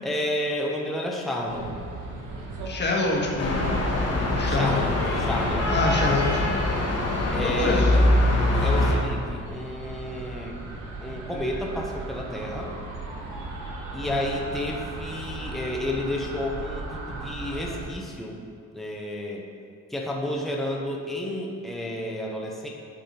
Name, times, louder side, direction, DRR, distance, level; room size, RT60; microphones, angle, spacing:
voice 1, 0.0-1.7 4.4-5.7 7.3-8.2 8.5-10.6 11.0-12.7 13.9-18.4 18.7-19.4 19.9-22.7, left 1 dB, ahead, -1 dB, 0.8 m, -31 dB
sound 1, 1.5-17.9, right 2 dB, 85° right, 1.2 m, -38 dB
voice 2, 2.6-3.8 4.3-4.9 5.7-6.4 7.4-7.9 14.0-14.2, left 3 dB, 35° left, -2 dB, 1.4 m, -26 dB
sound 2, 3.4-9.0, left 1 dB, 55° left, 1.3 m, -23 dB
9.3 x 3.6 x 4.2 m, 2.2 s
cardioid pair, 90°, 30 cm